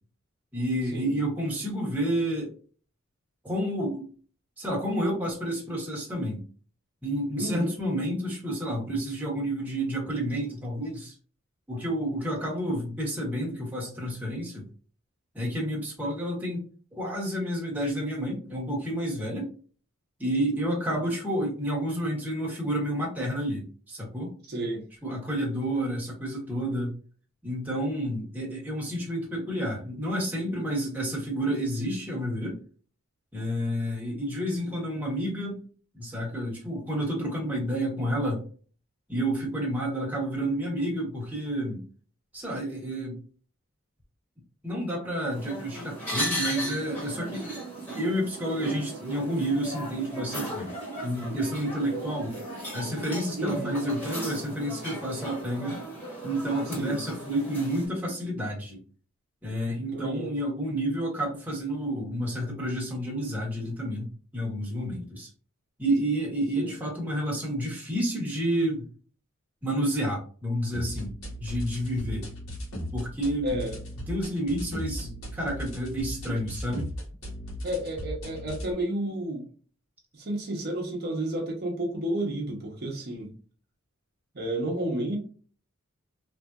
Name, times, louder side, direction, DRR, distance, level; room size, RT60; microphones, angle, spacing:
voice 1, 0.5-2.5 3.4-4.1 4.6-6.4 7.0-11.1 11.7-14.7 15.3-16.6 16.9-19.5 20.2-24.3 25.0-26.9 27.4-32.6 33.3-35.6 35.9-38.4 39.1-41.8 42.3-43.2 44.6-47.5 48.0-50.7 51.0-52.3 52.7-55.8 56.2-58.8 59.4-65.3 65.8-68.9 69.6-71.1 71.4-72.3 72.9-73.6 74.1-76.9, right 1 dB, 10° right, -4 dB, 1.1 m, -30 dB
voice 2, 7.3-7.8 24.5-24.8 53.3-53.8 56.7-57.0 59.6-60.3 66.6-66.7 73.4-73.8 77.6-79.5 80.1-83.3 84.3-85.2, right 1 dB, 50° right, 0 dB, 0.8 m, -31 dB
sound 1, 45.3-57.9, right 1 dB, 10° left, 1.5 m, -36 dB
sound 2, 70.7-78.7, equal, 70° left, 1.3 m, -37 dB
3.4 x 2.7 x 2.3 m, 0.41 s
head